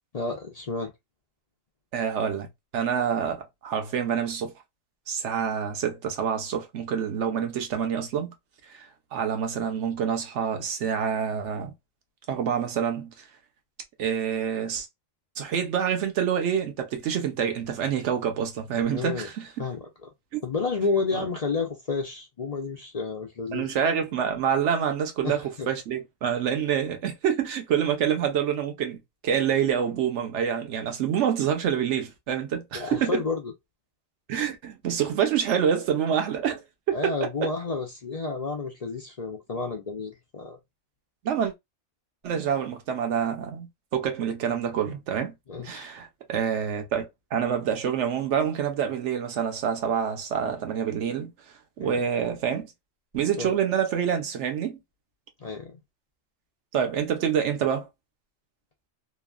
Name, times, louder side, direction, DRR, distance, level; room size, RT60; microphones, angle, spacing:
voice 1, 0.1-0.9 18.9-19.3 19.6-20.1 20.4-23.7 25.2-25.7 32.7-33.5 36.9-40.6 45.5-45.9 51.8-52.0 53.4-53.5 55.4-55.8, left 4 dB, 50° left, 0.4 m, -31 dB
voice 2, 1.9-2.5 2.7-4.5 5.1-8.3 8.7-11.7 12.3-13.1 14.0-14.9 15.4-19.7 20.3-20.4 21.1-21.2 23.5-29.0 29.2-33.2 34.3-37.5 41.2-41.5 42.2-45.3 45.6-51.3 51.8-52.7 53.1-54.8 56.7-57.9, right 8 dB, 65° right, 1.0 m, -27 dB
3.0 x 2.2 x 2.3 m
omnidirectional pair, 1.4 m